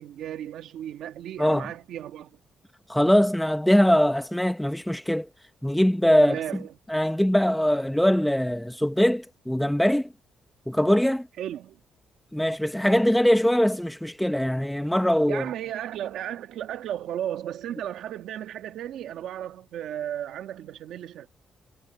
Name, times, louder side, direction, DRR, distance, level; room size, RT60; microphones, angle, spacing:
voice 1, 0.0-2.3 6.2-6.7 11.4-11.8 15.3-21.3, right 11 dB, 75° right, 1.8 m, -34 dB
voice 2, 2.9-5.3 5.6-6.4 6.9-10.1 10.7-11.3 12.3-15.4, equal, ahead, 0.7 m, -22 dB
cardioid pair, 170°, 0 cm